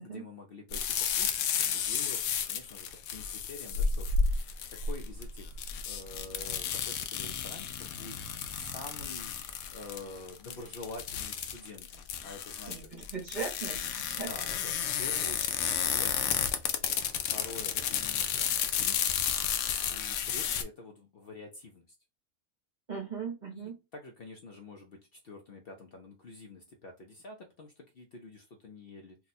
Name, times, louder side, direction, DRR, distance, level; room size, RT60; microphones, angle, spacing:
voice 1, 0.0-2.2 2.5-4.2 4.7-8.2 8.5-9.3 9.7-12.9 14.3-16.6 17.3-19.2 19.9-21.9 23.4-29.2, left 2 dB, 55° left, 2 dB, 0.7 m, -47 dB
sound 1, 0.7-20.6, left 7 dB, 90° left, 1.0 m, -32 dB
voice 2, 12.7-14.3 22.9-23.8, right 5 dB, 40° right, 0 dB, 0.9 m, -38 dB
2.8 x 2.3 x 4.0 m, 0.26 s
omnidirectional pair, 1.4 m